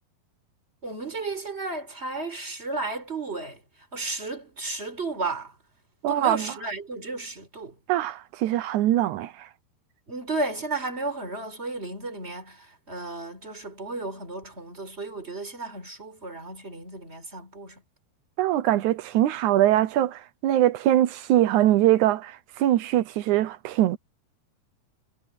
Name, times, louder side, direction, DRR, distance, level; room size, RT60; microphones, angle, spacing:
voice 1, 0.8-3.6 3.9-5.6 6.1-7.8 10.1-17.8, right 3 dB, 15° right, 4.6 m, -33 dB
voice 2, 6.0-6.5 7.9-9.5 18.4-24.0, right 13 dB, 90° right, 1.7 m, -22 dB
omnidirectional pair, 4.7 m